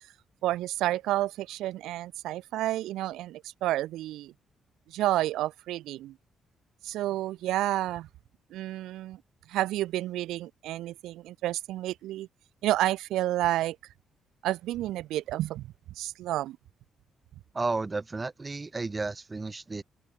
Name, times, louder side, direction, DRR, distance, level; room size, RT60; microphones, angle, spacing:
voice 1, 0.4-4.3 4.9-6.1 6.8-8.1 8.5-9.2 9.5-12.3 12.6-13.8 14.4-15.7 16.0-16.6, right 15 dB, 90° right, 0.6 m, -30 dB
voice 2, 17.5-19.8, right 3 dB, 25° right, 0.4 m, -32 dB
cardioid pair, 90°, 0 cm